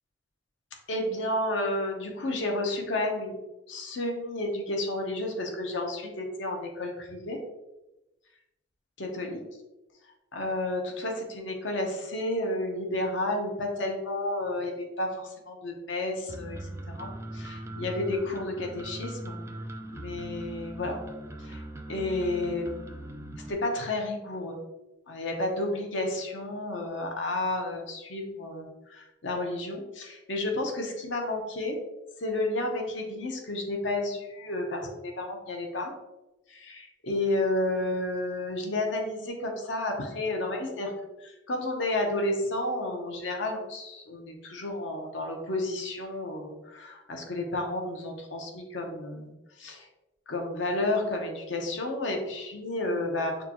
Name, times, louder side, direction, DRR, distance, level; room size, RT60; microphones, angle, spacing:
voice 1, 0.9-3.4 3.7-7.4 9.0-9.4 10.3-19.4 19.9-21.0 21.4-21.6 21.9-24.6 25.1-31.8 32.2-35.9 36.5-40.9 41.2-49.3 49.6-49.9 50.3-53.4, left 2 dB, 80° left, 2 dB, 0.8 m, -31 dB
sound 1, 16.3-23.5, right 1 dB, 15° right, 0.3 m, -40 dB
6.4 x 2.3 x 2.9 m, 0.99 s
head